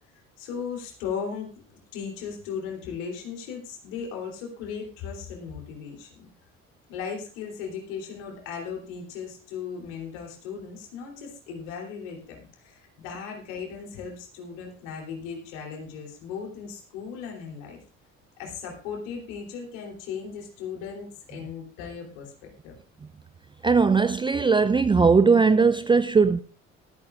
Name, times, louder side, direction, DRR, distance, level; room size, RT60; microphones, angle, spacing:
voice 1, 0.4-6.3 6.9-17.8 18.4-22.8, left 6 dB, 65° left, 3.4 m, -37 dB
voice 2, 23.6-26.4, right 4 dB, 15° right, 0.5 m, -19 dB
23.5 x 8.7 x 2.4 m
figure-of-eight pair, 55°, 39 cm